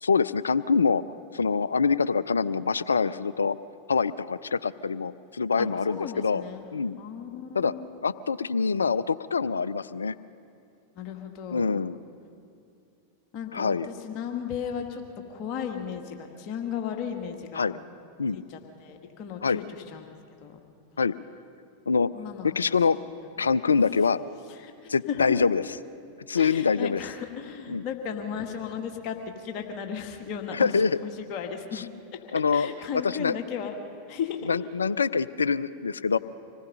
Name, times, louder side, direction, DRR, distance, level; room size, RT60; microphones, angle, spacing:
voice 1, 0.0-1.0 1.3-3.6 3.9-6.4 6.7-7.0 7.5-7.7 8.0-10.1 11.5-12.0 13.5-13.9 17.6-17.8 18.2-18.4 19.4-19.6 21.0-21.1 21.9-22.1 22.4-23.0 23.4-24.2 24.9-25.6 26.3-27.0 27.7-27.8 30.5-30.9 32.3-32.7 32.9-33.3 34.5-36.2, left 5 dB, 80° left, 17 dB, 0.4 m, -25 dB
voice 2, 5.6-6.7 7.0-7.9 10.9-11.8 13.3-15.0 15.3-17.7 18.3-20.1 20.4-20.6 22.1-22.8 23.4-23.5 23.7-23.8 24.5-25.4 26.4-30.7 31.0-31.9 32.5-33.8 34.1-34.5, left 7 dB, 45° left, 4 dB, 1.8 m, -35 dB
26.0 x 19.0 x 5.5 m, 2.5 s
figure-of-eight pair, 90°, 0 cm